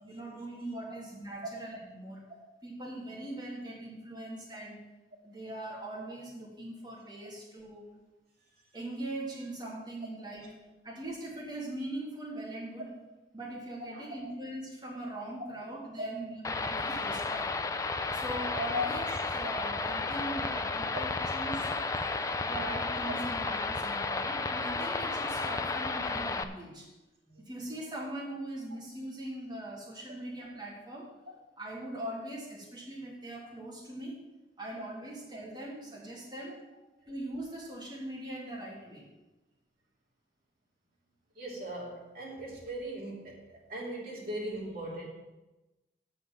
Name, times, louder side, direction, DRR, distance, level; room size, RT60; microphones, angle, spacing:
voice 1, 0.0-2.2 2.6-4.8 5.2-7.9 8.7-12.9 13.3-17.6 18.1-21.7 22.4-26.9 27.4-31.1 31.6-34.2 34.6-36.6 37.1-39.0, right 1 dB, 25° right, -5 dB, 3.2 m, -41 dB
sound 1, 16.4-26.4, left 3 dB, 20° left, 0.4 m, -33 dB
voice 2, 41.4-43.4 43.7-45.1, left 1 dB, 55° right, -3 dB, 2.8 m, -38 dB
7.9 x 6.7 x 7.5 m, 1.1 s
head